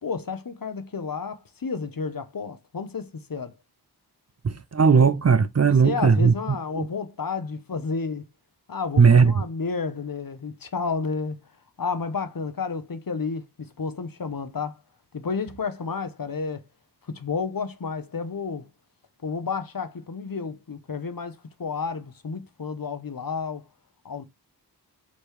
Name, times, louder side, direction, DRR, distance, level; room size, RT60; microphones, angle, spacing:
voice 1, 0.0-3.5 5.8-8.3 8.7-11.4 11.8-14.8 15.1-16.6 17.1-18.7 19.2-23.6 24.0-24.2, left 5 dB, 55° left, 0.7 m, -31 dB
voice 2, 4.4-6.3 6.8-6.9 9.0-9.4, right 5 dB, 40° right, 0.4 m, -17 dB
3.3 x 3.0 x 4.5 m
wide cardioid pair, 45°, 42 cm